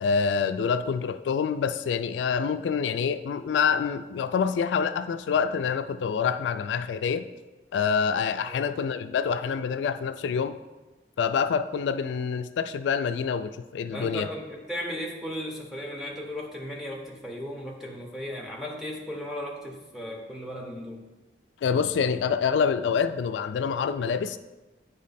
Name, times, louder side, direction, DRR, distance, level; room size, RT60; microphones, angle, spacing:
voice 1, 0.0-7.3 7.7-10.6 11.2-14.3 21.6-24.4, left 6 dB, 90° left, 10 dB, 0.3 m, -26 dB
voice 2, 13.9-21.1, equal, ahead, -2 dB, 0.9 m, -36 dB
9.1 x 3.1 x 4.1 m, 1.1 s
head